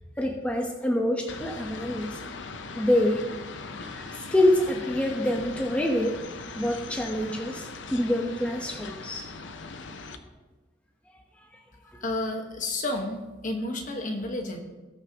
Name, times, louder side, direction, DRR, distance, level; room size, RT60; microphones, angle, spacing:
voice 1, 0.2-2.2 2.8-3.2 3.9-6.2 6.5-9.3 11.9-12.0, left 1 dB, 5° left, 1 dB, 0.9 m, -26 dB
sound 1, 1.3-10.2, left 4 dB, 75° left, 0.8 m, -40 dB
voice 2, 12.0-14.6, left 2 dB, 45° left, 3 dB, 1.4 m, -31 dB
19.5 x 6.7 x 2.9 m, 1.2 s
head